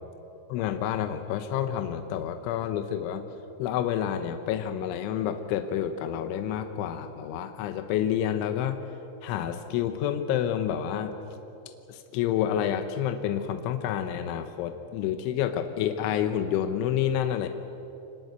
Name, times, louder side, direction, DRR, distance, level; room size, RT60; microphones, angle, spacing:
voice 1, 0.5-3.2 3.6-8.8 9.2-11.1 11.9-17.5, left 10 dB, 85° left, 8 dB, 3.4 m, -29 dB
25.0 x 21.5 x 8.0 m, 2.9 s
omnidirectional pair, 5.4 m